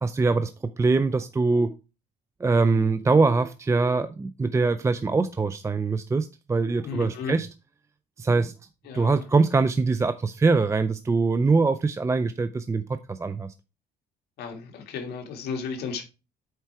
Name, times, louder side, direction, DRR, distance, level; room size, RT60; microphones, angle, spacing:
voice 1, 0.0-0.5 0.8-1.7 2.4-7.5 8.2-8.5 8.9-12.8 13.1-13.5, right 3 dB, 15° right, 0.5 m, -23 dB
voice 2, 6.8-7.3 8.9-9.2 14.4-16.0, left 5 dB, 70° left, 2.0 m, -34 dB
7.6 x 4.7 x 4.6 m
cardioid pair, 110°, 17 cm